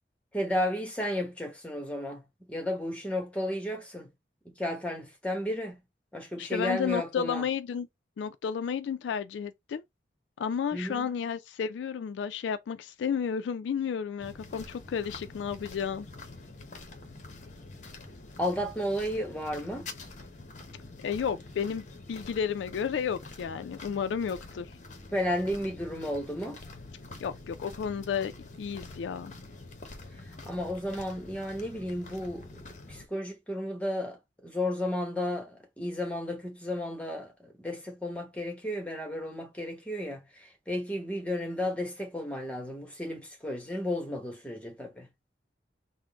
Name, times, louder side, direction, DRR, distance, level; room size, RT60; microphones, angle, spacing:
voice 1, 0.3-2.2 2.5-4.1 4.6-5.8 6.1-7.4 10.7-11.1 18.4-19.9 25.1-26.6 30.5-32.5 32.9-34.2 34.4-45.1, left 1 dB, 5° left, 0.9 m, -33 dB
voice 2, 6.4-7.9 8.2-9.8 10.4-16.1 21.0-24.7 27.2-28.3 28.6-29.3, left 7 dB, 85° left, 0.3 m, -32 dB
sound 1, 14.2-33.1, left 2 dB, 40° left, 0.6 m, -46 dB
3.7 x 2.1 x 3.4 m
head